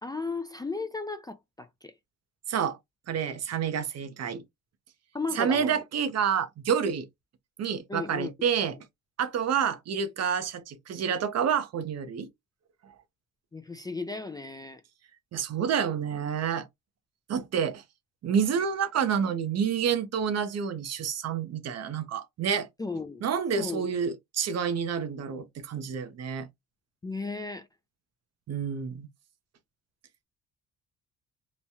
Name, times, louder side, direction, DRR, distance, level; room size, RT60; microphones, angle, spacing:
voice 1, 0.0-1.9 5.1-5.8 7.9-8.3 13.5-14.8 22.8-23.3 23.6-24.0 27.0-27.7, left 3 dB, 15° left, 0.3 m, -35 dB
voice 2, 3.1-4.4 5.3-7.1 7.6-8.8 9.2-12.3 15.3-16.7 17.3-17.8 18.2-22.7 23.2-26.5 28.5-29.1, right 7 dB, 55° right, 0.7 m, -28 dB
3.0 x 2.2 x 2.7 m
cardioid pair, 90°, 30 cm